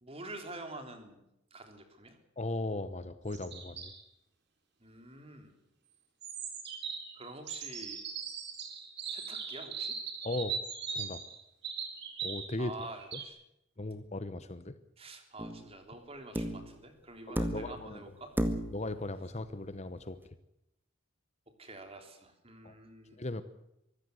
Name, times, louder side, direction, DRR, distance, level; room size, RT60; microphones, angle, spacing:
voice 1, 0.0-2.2 4.8-5.5 7.1-8.0 9.1-10.0 12.6-13.4 15.0-18.3 21.6-23.2, right 2 dB, 30° right, 6 dB, 3.5 m, -47 dB
voice 2, 2.4-3.9 10.2-10.6 10.9-11.2 12.2-12.7 13.1-13.2 13.8-14.7 17.3-18.0 18.7-20.2 22.6-22.7 23.2-23.4, left 2 dB, 30° left, 12 dB, 1.0 m, -37 dB
sound 1, 3.3-4.0 6.2-12.5 12.8-13.2, right 6 dB, 55° right, 4.2 m, -40 dB
sound 2, 15.4-15.7 16.3-16.7 17.4-17.9 18.4-18.9 20.3-20.4, equal, 10° right, 1.9 m, -33 dB
24.5 x 15.5 x 8.0 m, 0.85 s
head